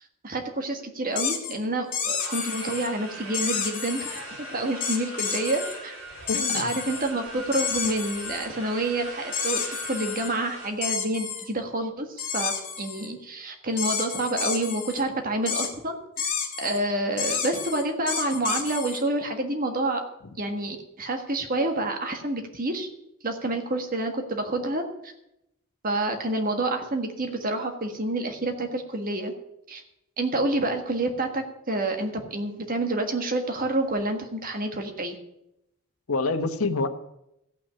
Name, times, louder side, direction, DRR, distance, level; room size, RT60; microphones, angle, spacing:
voice 1, 0.2-4.1 4.4-5.9 6.5-16.3 16.6-20.0 20.4-22.9 23.2-25.1 25.8-29.3 29.7-29.8 30.2-35.2, right 2 dB, 40° right, 5 dB, 1.6 m, -28 dB
sound 1, 1.1-1.5 1.9-2.9 3.3-4.2 4.8-5.7 6.3-7.1 7.5-8.5 9.3-10.3 10.8-11.5 12.2-13.1 13.8-15.0 15.5-15.7 16.2-16.8 17.2-19.0, left 7 dB, 40° left, 2.2 m, -30 dB
sound 2, 2.2-10.7, right 1 dB, 70° right, 4.6 m, -40 dB
voice 2, 6.3-6.7 36.1-36.9, left 3 dB, 80° left, 9 dB, 1.1 m, -26 dB
14.0 x 6.0 x 8.4 m, 0.85 s
head